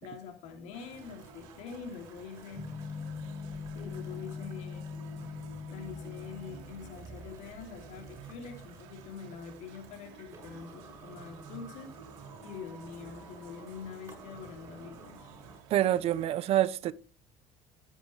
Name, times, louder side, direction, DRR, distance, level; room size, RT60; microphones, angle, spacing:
voice 1, 0.0-2.7 3.7-4.9 5.7-11.9 12.4-15.3, left 6 dB, 65° left, 3.0 m, -45 dB
sound 1, 0.7-16.3, right 7 dB, 85° right, 2.5 m, -51 dB
sound 2, 0.9-15.6, right 2 dB, 25° right, 6.7 m, -55 dB
sound 3, 2.6-6.9, left 5 dB, 15° left, 1.4 m, -41 dB
voice 2, 15.7-16.9, right 12 dB, 50° right, 0.8 m, -26 dB
14.0 x 10.0 x 3.3 m
cardioid pair, 125°, 13 cm